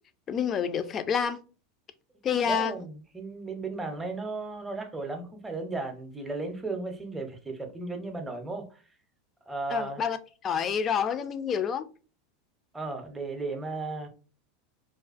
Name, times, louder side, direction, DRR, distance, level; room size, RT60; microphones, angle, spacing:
voice 1, 0.3-1.4 2.2-2.7 9.7-10.2 10.4-11.8, left 7 dB, 35° left, 0.3 m, -28 dB
voice 2, 2.5-8.8 9.5-10.0 12.7-14.1, right 3 dB, 10° right, 0.6 m, -35 dB
2.4 x 2.2 x 2.4 m
hypercardioid pair, 110°, 0 cm